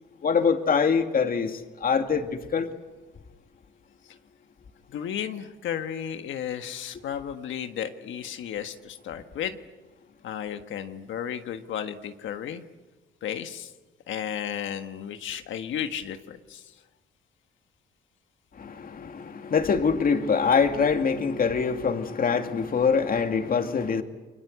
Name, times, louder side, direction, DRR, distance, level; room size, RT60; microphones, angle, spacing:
voice 1, 0.2-2.7 18.6-24.0, left 5 dB, 45° left, 6 dB, 2.4 m, -24 dB
voice 2, 4.9-9.6 10.2-12.6 13.2-13.7 14.1-16.7, left 9 dB, 75° left, 7 dB, 1.5 m, -33 dB
30.0 x 22.5 x 8.1 m, 1.2 s
cardioid pair, 90°, 20 cm